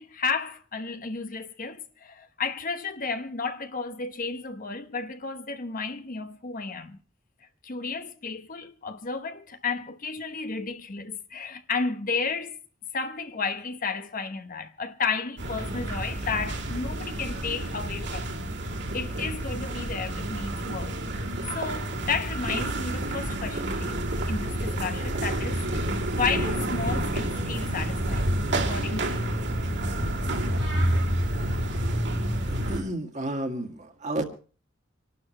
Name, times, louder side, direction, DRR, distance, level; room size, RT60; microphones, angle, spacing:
voice 1, 0.0-7.0 7.6-12.6 12.9-18.4 18.9-21.0 21.5-29.3, left 4 dB, 45° left, 1.0 m, -33 dB
sound 1, 15.4-32.8, right 1 dB, 65° right, 2.5 m, -29 dB
voice 2, 32.5-34.2, right 1 dB, 40° right, 1.9 m, -31 dB
26.5 x 12.0 x 3.2 m
head